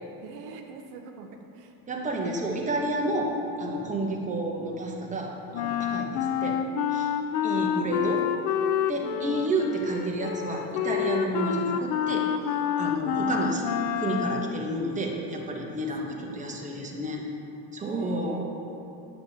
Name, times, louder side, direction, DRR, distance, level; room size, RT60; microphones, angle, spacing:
voice 1, 0.2-1.8 3.8-4.1 5.9-6.1 7.6-8.4 9.0-9.7 16.0-16.6 17.8-18.4, right 4 dB, 85° right, 3 dB, 0.8 m, -44 dB
voice 2, 1.9-6.6 6.9-7.1 7.4-8.2 8.9-12.3 12.8-13.6 13.9-17.2 17.7-18.4, right 1 dB, 15° right, -1 dB, 1.0 m, -30 dB
Wind instrument woodwind instrument, 5.5-14.6, left 8 dB, 85° left, 0.5 m, -28 dB
9.1 x 6.8 x 2.8 m, 2.7 s
supercardioid pair, 95°, 47 cm